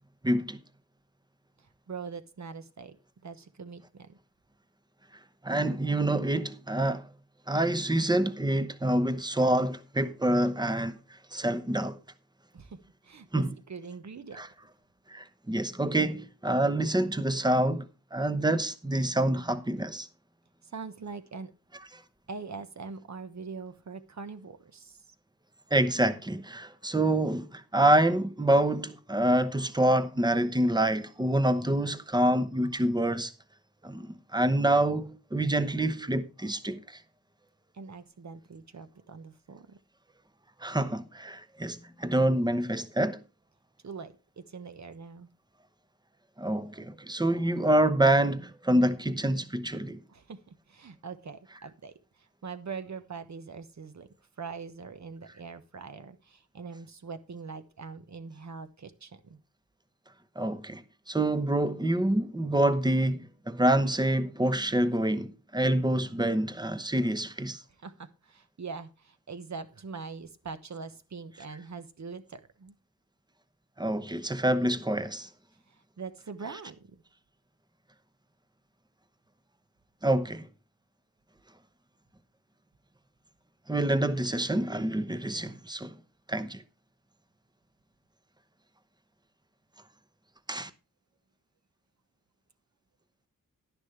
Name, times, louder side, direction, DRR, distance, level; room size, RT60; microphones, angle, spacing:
voice 1, 0.2-0.6 5.4-7.1 7.5-11.0 11.3-12.0 13.3-13.5 14.3-14.5 15.1-20.1 25.7-33.3 33.8-37.0 40.6-43.2 46.4-50.0 60.4-67.6 73.8-75.3 80.0-80.5 83.7-85.9 86.3-86.6 90.5-90.7, right 1 dB, 10° right, 0.9 m, -27 dB
voice 2, 1.9-3.0 3.2-4.2 12.5-12.8 13.0-14.4 20.7-21.5 22.3-25.0 37.7-39.8 43.8-45.3 50.1-54.1 54.4-59.4 67.8-72.7 76.0-77.0 85.3-85.6, right 5 dB, 50° right, 1.2 m, -42 dB
11.5 x 10.5 x 3.3 m
wide cardioid pair, 135°, 35 cm